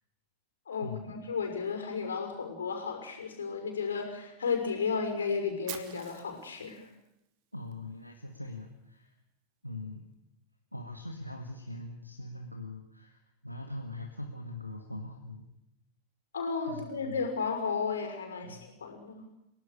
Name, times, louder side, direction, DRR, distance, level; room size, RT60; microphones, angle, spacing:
voice 1, 0.7-6.9 16.3-19.2, left 5 dB, 70° left, 5 dB, 6.2 m, -33 dB
Fire, 5.7-7.7, right 12 dB, 45° right, 2.8 m, -46 dB
voice 2, 7.5-9.1 9.6-10.0 10.7-15.5 16.7-17.3 18.4-18.6, left 2 dB, 90° left, 2 dB, 2.1 m, -42 dB
30.0 x 18.0 x 6.8 m, 0.85 s
figure-of-eight pair, 90°, 0 cm